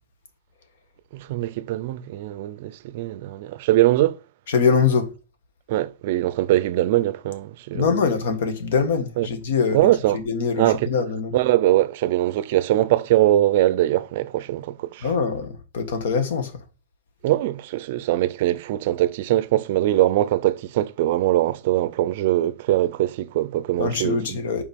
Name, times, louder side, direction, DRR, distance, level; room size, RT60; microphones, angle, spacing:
voice 1, 1.1-4.2 5.7-8.0 9.2-9.3 9.7-10.2 10.6-10.9 11.3-15.1 17.2-24.4, right 14 dB, 45° right, 0.5 m, -22 dB
voice 2, 4.5-5.1 7.7-11.3 15.0-16.5 23.8-24.6, left 5 dB, 70° left, 1.4 m, -23 dB
5.1 x 4.9 x 5.2 m
supercardioid pair, 175°, 0 cm